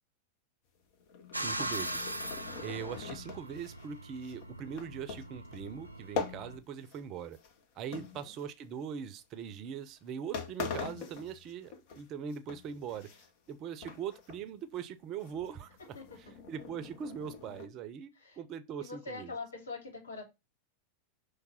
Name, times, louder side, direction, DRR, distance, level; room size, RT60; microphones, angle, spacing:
sound 1, 0.9-7.1 7.3-8.8 9.5-9.7 10.1-10.2 10.3-12.0 12.3-13.5 13.8-14.4 14.7-14.8 15.2-17.7, left 5 dB, 45° left, 1.2 m, -43 dB
voice 1, 1.3-2.1 2.6-7.4 7.8-13.1 13.5-15.7 16.5-19.3, right 7 dB, 35° right, 0.7 m, -41 dB
sound 2, 1.3-6.6, right 1 dB, 85° right, 0.5 m, -40 dB
voice 2, 7.9-8.3 15.9-16.2 18.1-18.4 18.8-20.2, left 3 dB, 70° left, 3.1 m, -43 dB
5.9 x 3.3 x 5.6 m
figure-of-eight pair, 90°, 0 cm